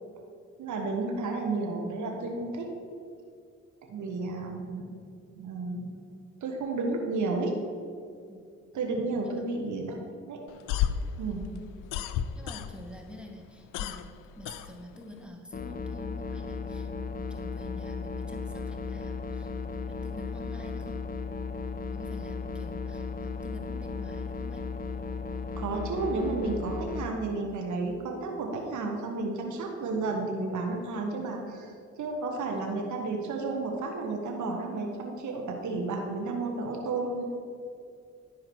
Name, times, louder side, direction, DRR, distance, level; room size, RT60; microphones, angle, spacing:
voice 1, 0.6-2.7 3.9-5.0 5.4-6.1 6.4-7.5 8.7-9.9 10.3-10.4 11.2-11.4 25.6-37.2, right 3 dB, 70° right, 1 dB, 1.3 m, -32 dB
sound 1, 10.5-13.0 13.3-15.2, left 10 dB, 85° left, 0.5 m, -32 dB
voice 2, 12.3-14.1 14.3-21.0 21.9-24.6 32.5-32.9, equal, 5° right, 1 dB, 1.5 m, -48 dB
sound 2, 15.5-27.1, left 4 dB, 30° left, 0.7 m, -35 dB
11.0 x 4.9 x 6.1 m, 2.4 s
supercardioid pair, 55°, 31 cm